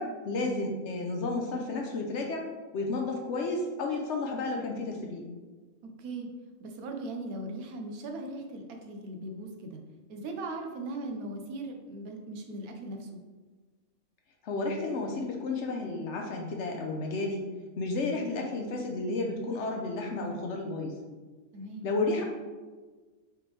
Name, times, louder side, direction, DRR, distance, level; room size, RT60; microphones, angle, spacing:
voice 1, 0.0-2.5 2.7-5.2 14.4-17.4 17.8-21.0 21.8-22.2, left 3 dB, 60° left, 1 dB, 0.8 m, -32 dB
voice 2, 6.0-6.3 6.6-9.8 10.1-13.2 18.1-18.5 21.5-21.9, right 2 dB, 90° right, 3 dB, 1.1 m, -39 dB
5.1 x 3.0 x 3.2 m, 1.3 s
omnidirectional pair, 1.5 m